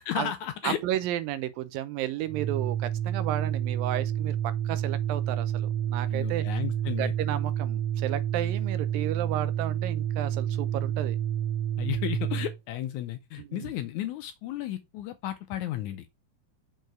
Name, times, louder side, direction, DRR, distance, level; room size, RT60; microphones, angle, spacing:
voice 1, 0.1-0.8 6.1-7.1 11.8-16.1, left 12 dB, 80° left, 1.8 m, -33 dB
voice 2, 0.6-6.4 7.0-11.2 13.4-13.7, right 13 dB, 90° right, 2.5 m, -33 dB
Organ, 2.2-12.6, right 10 dB, 70° right, 1.6 m, -29 dB
6.4 x 4.5 x 4.6 m
omnidirectional pair, 3.9 m